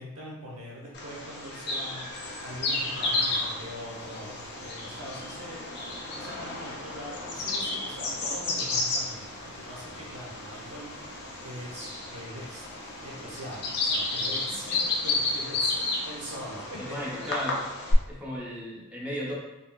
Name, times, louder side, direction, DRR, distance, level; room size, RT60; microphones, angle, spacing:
voice 1, 0.0-2.1 2.4-5.6 6.1-10.9 11.4-12.7 13.0-17.3, equal, 85° right, -4 dB, 0.9 m, -42 dB
Bird vocalization bird call bird song, 0.9-17.9, left 3 dB, 50° left, 0.5 m, -32 dB
sound 1, 2.1-18.1, right 1 dB, 20° left, 0.9 m, -52 dB
voice 2, 16.8-17.6 18.1-19.3, equal, 5° right, -6 dB, 0.5 m, -35 dB
4.0 x 2.0 x 2.2 m, 1.1 s
head